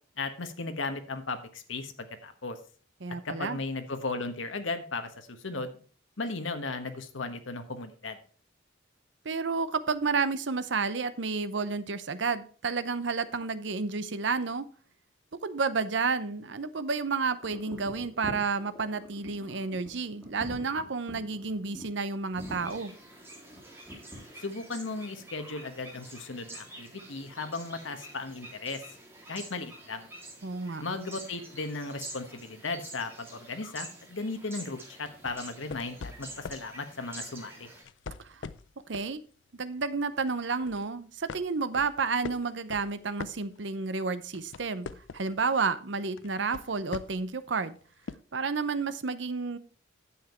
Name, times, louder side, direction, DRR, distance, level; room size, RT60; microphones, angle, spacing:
voice 1, 0.2-2.6 3.2-5.8 6.2-8.2 24.4-28.8 29.3-30.1 30.8-37.7, left 3 dB, 90° left, 7 dB, 1.3 m, -36 dB
voice 2, 3.0-3.6 9.2-14.7 15.4-22.9 30.4-30.8 38.2-38.4 38.9-39.2 39.5-44.9 45.1-47.8 48.3-49.6, right 4 dB, 65° right, 13 dB, 0.7 m, -31 dB
sound 1, 17.4-24.4, equal, 5° left, 3.1 m, -46 dB
sound 2, 22.4-37.8, right 2 dB, 15° right, 3.9 m, -48 dB
sound 3, 35.0-36.7 37.7-39.2 39.6-39.8 40.2-40.9 41.3-43.9 44.2-45.4 46.2-47.3 48.1-48.2, left 5 dB, 70° left, 0.5 m, -42 dB
10.0 x 7.3 x 4.4 m, 0.40 s
head